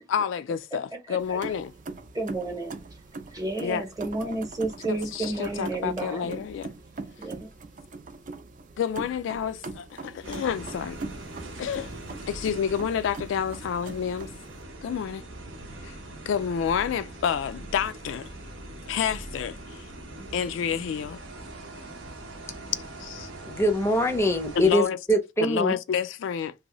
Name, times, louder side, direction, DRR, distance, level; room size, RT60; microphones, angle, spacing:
voice 1, 0.1-1.7 3.6-3.8 4.9-6.7 8.8-11.0 11.6-11.9 12.3-14.3 14.8-15.2 15.8-16.0 16.3-18.3 18.9-19.8 20.3-21.2 23.0-23.3 24.6-25.0 25.4-26.5, left 7 dB, 80° left, 0.3 m, -29 dB
voice 2, 1.1-1.4 2.1-2.8 3.3-6.4 7.2-7.5, right 2 dB, 20° right, 0.9 m, -32 dB
sound 1, 1.2-14.6, right 3 dB, 45° right, 0.4 m, -42 dB
sound 2, 10.2-24.7, right 1 dB, 80° right, 0.8 m, -42 dB
voice 3, 23.5-25.7, equal, 15° left, 0.5 m, -23 dB
2.7 x 2.6 x 2.9 m
head